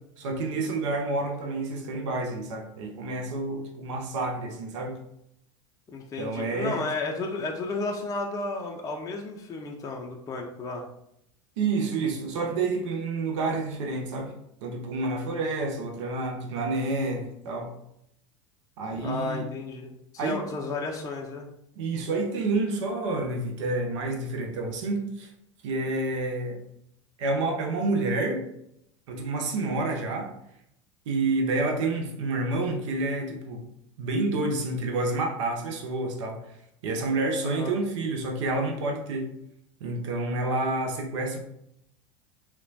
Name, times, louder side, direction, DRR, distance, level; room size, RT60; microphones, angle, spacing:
voice 1, 0.2-5.0 6.2-6.8 11.6-14.3 14.6-17.7 18.8-19.5 20.2-20.4 21.8-25.3 25.6-26.6 27.2-28.4 29.1-30.3 31.1-33.6 34.0-36.4 36.8-39.3 39.8-41.4, right 2 dB, 75° right, 3 dB, 0.6 m, -29 dB
voice 2, 5.9-10.8 18.9-21.5 37.4-37.8, left 3 dB, 20° left, 1 dB, 0.4 m, -33 dB
2.9 x 2.1 x 2.7 m, 0.76 s
hypercardioid pair, 90°, 16 cm